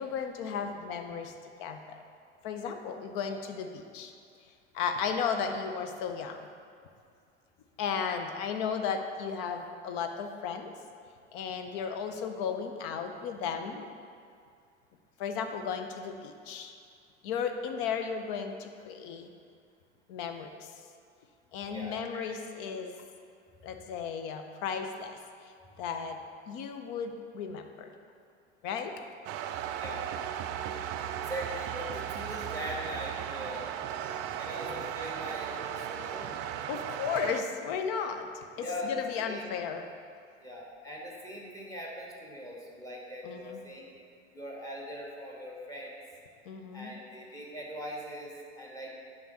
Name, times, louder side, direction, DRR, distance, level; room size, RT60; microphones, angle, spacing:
voice 1, 0.0-1.3 1.6-2.0 2.4-4.1 4.7-6.4 7.8-10.7 11.3-13.9 15.2-16.7 17.2-19.3 20.1-20.7 21.5-23.0 23.6-26.2 26.5-27.9 28.6-28.9 36.7-38.3 38.6-39.8 43.2-43.7 46.5-46.9, left 6 dB, 45° left, 6 dB, 0.8 m, -35 dB
voice 2, 21.6-22.2 29.7-30.0 31.3-33.8 34.4-36.4 38.6-39.4 40.4-43.9 44.3-46.0 46.7-48.9, equal, 10° left, -3 dB, 1.7 m, -41 dB
sound 1, 29.2-37.4, right 9 dB, 30° right, 0.4 m, -36 dB
9.2 x 6.4 x 4.1 m, 2.3 s
figure-of-eight pair, 75°, 36 cm